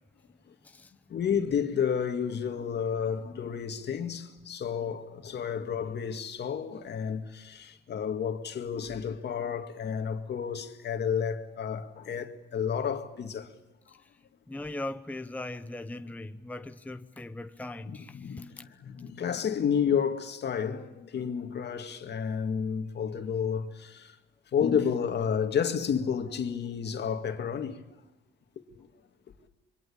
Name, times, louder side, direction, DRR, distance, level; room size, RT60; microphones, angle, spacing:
voice 1, 1.1-13.5 17.9-24.2 24.5-27.8, left 7 dB, 60° left, 2.2 m, -31 dB
voice 2, 14.5-18.6, left 2 dB, 10° left, 0.9 m, -40 dB
25.5 x 23.0 x 8.7 m
cardioid pair, 90°, 20 cm